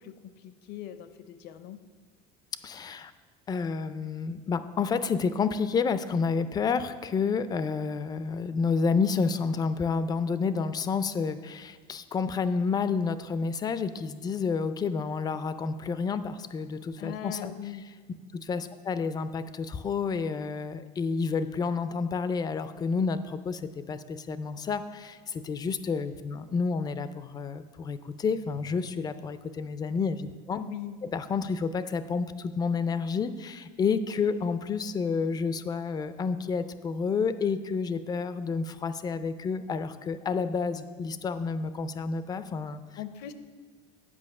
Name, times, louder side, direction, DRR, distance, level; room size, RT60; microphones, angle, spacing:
voice 1, 0.0-1.8 17.0-17.9 30.5-31.0 43.0-43.3, left 11 dB, 60° left, 11 dB, 0.6 m, -40 dB
voice 2, 2.6-3.1 3.5-17.5 18.3-30.6 31.1-42.8, left 5 dB, 20° left, 12 dB, 0.4 m, -30 dB
8.6 x 5.2 x 6.5 m, 1.5 s
cardioid pair, 140°, 19 cm